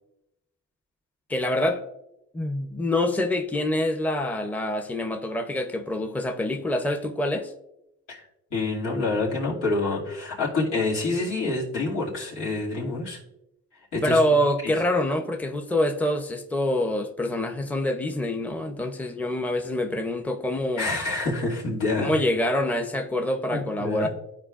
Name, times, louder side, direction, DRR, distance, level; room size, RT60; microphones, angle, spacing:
voice 1, 1.3-1.8 2.3-7.5 14.0-20.9 22.0-24.1, left 1 dB, 5° left, 0.7 m, -26 dB
voice 2, 8.5-13.2 13.9-14.2 14.6-14.7 20.8-22.1 23.5-24.1, left 3 dB, 85° left, 2.5 m, -27 dB
13.0 x 4.5 x 2.5 m
cardioid pair, 90°, 30 cm